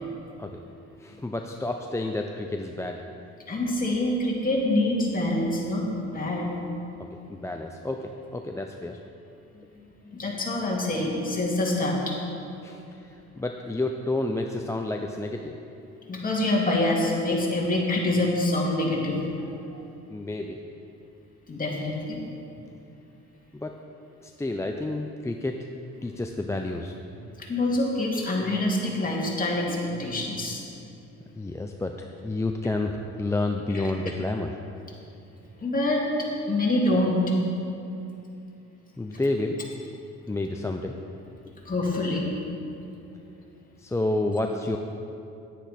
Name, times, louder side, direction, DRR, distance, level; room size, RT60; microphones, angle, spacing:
voice 1, 1.0-3.0 7.0-9.0 12.6-15.6 20.1-20.6 23.5-23.8 24.2-25.7 26.0-26.9 31.4-34.6 39.0-39.6 40.3-40.9 43.8-44.8, left 2 dB, 10° left, 3 dB, 0.4 m, -30 dB
voice 2, 3.5-6.5 10.1-12.2 16.1-19.8 21.5-22.2 27.4-30.6 33.7-33.9 35.6-37.2 41.6-42.3, left 1 dB, 30° left, -3 dB, 2.2 m, -26 dB
10.0 x 9.1 x 4.2 m, 2.7 s
cardioid pair, 90°, 30 cm